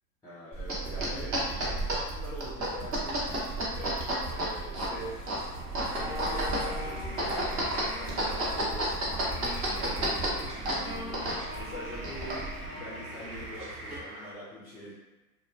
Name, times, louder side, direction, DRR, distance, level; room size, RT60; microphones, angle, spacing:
voice 1, 0.2-14.9, equal, 5° left, -8 dB, 0.4 m, -44 dB
sound 1, 0.5-12.7, right 1 dB, 30° right, 0.8 m, -32 dB
sound 2, 4.9-14.0, left 1 dB, 65° right, 1.3 m, -42 dB
sound 3, 5.9-14.3, right 1 dB, 90° right, 0.7 m, -46 dB
2.4 x 2.1 x 3.1 m, 1.1 s
hypercardioid pair, 100°, 45 cm